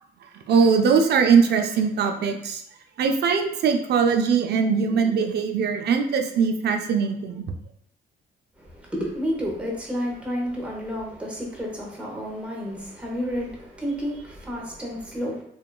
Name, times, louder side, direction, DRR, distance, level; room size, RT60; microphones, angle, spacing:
voice 1, 0.3-2.6 3.0-7.4, right 6 dB, 55° right, 5 dB, 0.4 m, -21 dB
voice 2, 8.6-15.4, equal, 5° right, -2 dB, 0.8 m, -30 dB
2.8 x 2.2 x 2.2 m, 0.73 s
cardioid pair, 90°, 20 cm